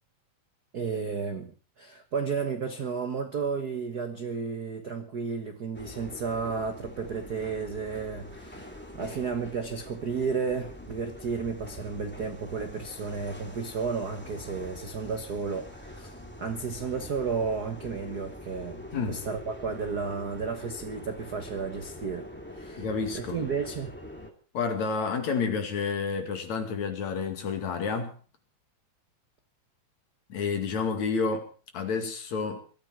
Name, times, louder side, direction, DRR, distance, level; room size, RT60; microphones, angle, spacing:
voice 1, 0.7-1.5 1.8-16.1 16.4-22.3 22.5-22.9 23.1-23.9, right 5 dB, 75° right, 6 dB, 0.8 m, -33 dB
sound 1, 5.7-24.3, left 1 dB, 5° left, 2.0 m, -44 dB
voice 2, 22.8-23.4 24.5-28.2 30.3-31.5 31.7-32.6, left 5 dB, 55° left, 6 dB, 3.4 m, -30 dB
22.5 x 14.0 x 4.6 m, 0.39 s
omnidirectional pair, 3.9 m